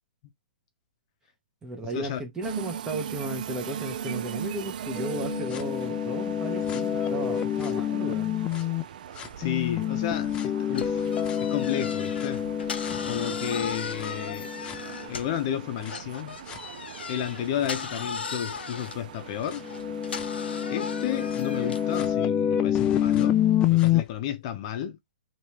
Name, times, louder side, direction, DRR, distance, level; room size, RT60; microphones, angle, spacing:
voice 1, 1.6-8.3, right 1 dB, 10° right, 0.9 m, -35 dB
sound 1, 2.4-22.2, right 8 dB, 55° right, 0.4 m, -40 dB
sound 2, 5.0-8.8 9.2-15.3 15.8-15.9 16.5-16.6 17.6-17.7 18.6-18.7 19.5-24.0, left 10 dB, 15° left, 0.4 m, -27 dB
voice 2, 9.4-11.0 11.4-12.5 13.0-14.5 15.1-16.4 17.1-19.6 20.7-23.4 23.6-25.0, left 10 dB, 35° left, 0.8 m, -32 dB
sound 3, 10.7-15.5 15.9-21.9, left 5 dB, 90° left, 0.6 m, -38 dB
3.1 x 3.0 x 2.9 m
hypercardioid pair, 150°, 5 cm